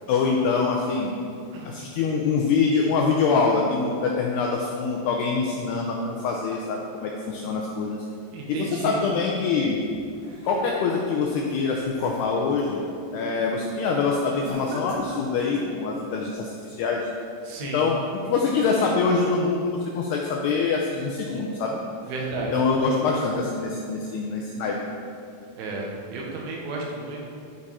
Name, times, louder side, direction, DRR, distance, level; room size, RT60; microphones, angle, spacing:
voice 1, 0.1-1.1 1.7-8.0 8.5-9.8 10.5-12.8 13.1-17.0 17.6-21.8 22.5-24.8, left 4 dB, 85° left, -1 dB, 2.3 m, -24 dB
voice 2, 8.3-9.0 17.5-17.9 22.0-22.5 25.6-27.2, right 3 dB, 85° right, -2 dB, 3.7 m, -32 dB
sound 1, 9.9-11.0 11.5-12.8 13.2-13.6 14.4-15.8, right 1 dB, 65° right, 2.3 m, -39 dB
13.5 x 4.6 x 4.2 m, 2.5 s
omnidirectional pair, 5.4 m